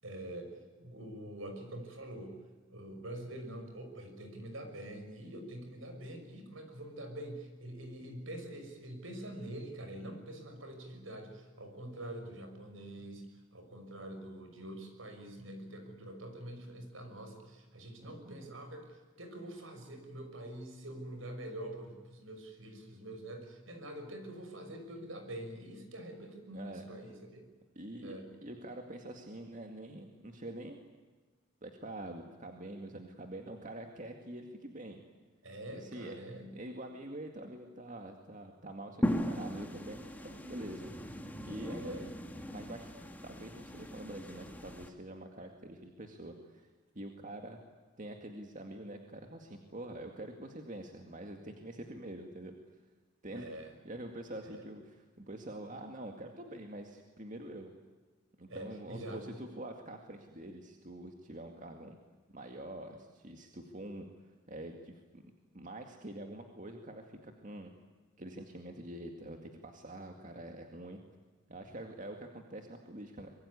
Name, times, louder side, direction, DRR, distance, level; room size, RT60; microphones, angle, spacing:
voice 1, 0.0-2.4 2.7-27.5 28.0-28.3 35.4-36.6 41.8-42.1 53.3-53.7 54.5-54.7 58.5-59.4, right 1 dB, 70° right, 6 dB, 6.2 m, -45 dB
voice 2, 18.0-18.5 26.5-26.9 27.8-30.8 31.6-35.0 35.7-36.1 36.5-40.9 41.4-42.0 42.5-42.9 43.2-47.6 48.0-52.6 53.2-53.4 53.8-54.8 55.2-57.7 58.4-62.0 62.3-64.1 64.5-65.2 65.5-67.7 68.2-71.0 71.5-73.3, right 1 dB, 40° right, 4 dB, 2.2 m, -45 dB
sound 1, 39.0-44.9, equal, 10° left, 2.1 m, -38 dB
24.5 x 22.5 x 9.8 m, 1.3 s
head